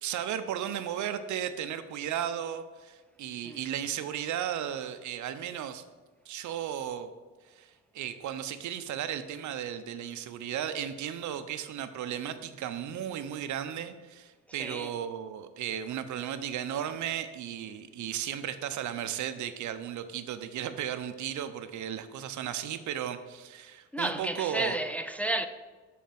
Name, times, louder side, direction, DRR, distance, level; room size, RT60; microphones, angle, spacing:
voice 1, 0.0-5.8 6.3-7.1 7.5-24.8, right 9 dB, 75° right, 0.7 m, -35 dB
voice 2, 14.5-14.9 23.9-25.5, right 1 dB, 5° left, 0.4 m, -32 dB
7.3 x 4.2 x 5.8 m
cardioid pair, 90°, 30 cm